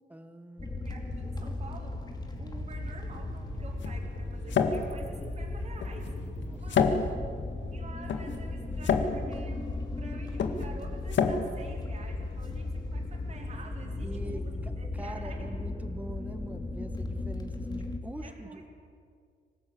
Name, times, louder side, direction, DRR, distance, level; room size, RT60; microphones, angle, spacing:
voice 1, 0.1-0.9 6.4-6.6 7.2-7.5 14.0-18.7, right 1 dB, 10° right, 7 dB, 1.5 m, -44 dB
sound 1, 0.6-18.0, left 2 dB, 20° left, 2.2 m, -36 dB
voice 2, 0.8-2.0 2.4-6.9 7.7-9.6 10.0-14.4 14.8-15.5 18.2-18.6, right 3 dB, 35° right, -1 dB, 4.1 m, -48 dB
sound 2, 2.8-12.7, left 5 dB, 90° left, 2.0 m, -31 dB
26.5 x 18.5 x 8.8 m, 2.2 s
wide cardioid pair, 170°, 18 cm